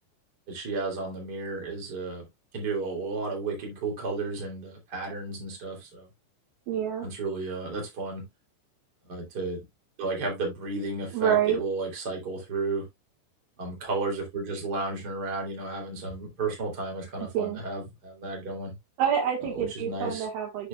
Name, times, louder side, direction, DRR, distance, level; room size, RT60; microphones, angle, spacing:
voice 1, 0.5-2.2 2.5-6.1 7.0-8.3 9.1-9.6 10.0-12.9 13.6-18.7 19.5-20.3 20.6-20.7, right 3 dB, 25° right, 3.2 m, -33 dB
voice 2, 6.7-7.1 11.1-11.6 17.3-17.6 19.0-20.7, right 9 dB, 70° right, 3.4 m, -27 dB
9.9 x 6.2 x 2.4 m
omnidirectional pair, 4.9 m